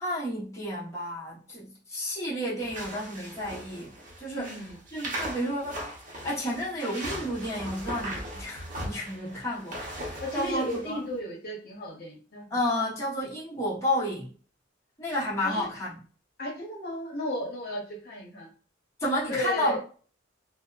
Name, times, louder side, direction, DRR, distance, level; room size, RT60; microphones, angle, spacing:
voice 1, 0.0-3.9 4.2-4.5 4.9-11.0 12.5-14.3 15.0-16.0 19.0-19.8, left 1 dB, 15° left, 0.9 m, -31 dB
sound 1, 2.6-10.9, right 1 dB, 45° right, 0.7 m, -39 dB
voice 2, 4.3-4.8 10.2-12.6 15.4-15.7 16.4-18.5 19.3-19.8, equal, 55° left, 0.8 m, -34 dB
2.7 x 2.0 x 2.3 m
head